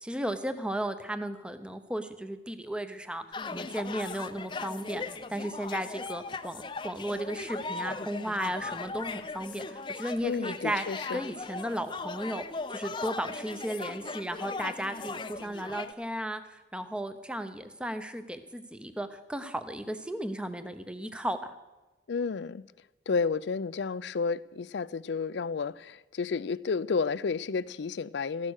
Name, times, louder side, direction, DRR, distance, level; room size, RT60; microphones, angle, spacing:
voice 1, 0.0-10.8 11.1-12.4 12.7-21.5, right 1 dB, 5° right, 0.8 m, -35 dB
sound 1, 3.3-15.9, left 3 dB, 25° left, 0.6 m, -38 dB
voice 2, 10.2-11.2 22.1-22.6 23.1-28.5, left 5 dB, 70° left, 0.4 m, -31 dB
15.0 x 12.0 x 6.4 m
head